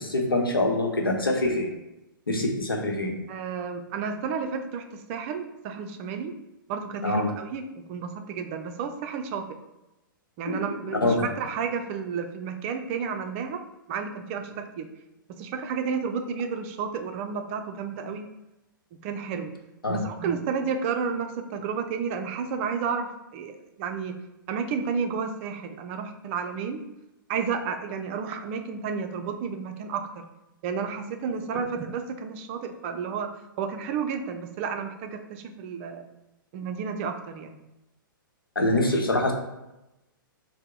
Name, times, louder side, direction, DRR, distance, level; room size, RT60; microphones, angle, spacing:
voice 1, 0.0-1.7 2.3-3.1 7.0-7.3 10.5-10.6 11.0-11.3 19.8-20.0 38.6-39.3, left 2 dB, 85° left, 2 dB, 0.8 m, -24 dB
voice 2, 3.3-6.3 6.7-9.5 10.4-13.6 13.9-14.9 15.4-18.3 19.0-19.5 19.9-24.1 24.5-26.9 27.3-30.2 30.6-33.3 33.6-36.0 36.5-37.7, right 6 dB, 35° right, 6 dB, 0.5 m, -31 dB
4.5 x 2.1 x 3.7 m, 0.94 s
figure-of-eight pair, 115°, 12 cm